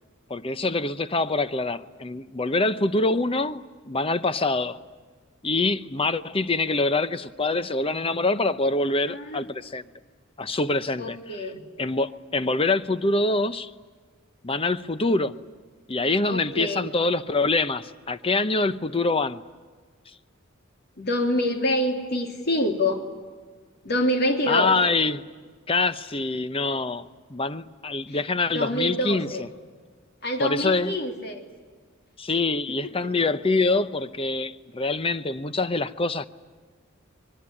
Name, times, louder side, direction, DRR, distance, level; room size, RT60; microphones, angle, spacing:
voice 1, 0.3-4.8 5.4-9.8 10.4-11.5 11.8-13.7 14.4-15.3 15.9-19.4 24.5-25.3 25.7-29.5 30.4-31.0 32.2-36.3, left 3 dB, 25° left, 0.8 m, -25 dB
voice 2, 9.1-9.4 11.0-11.6 16.3-16.9 21.0-23.0 23.8-24.7 28.1-28.2 28.5-29.5 30.2-31.4 32.8-32.9, left 1 dB, 55° left, 3.0 m, -26 dB
24.5 x 22.0 x 9.9 m
head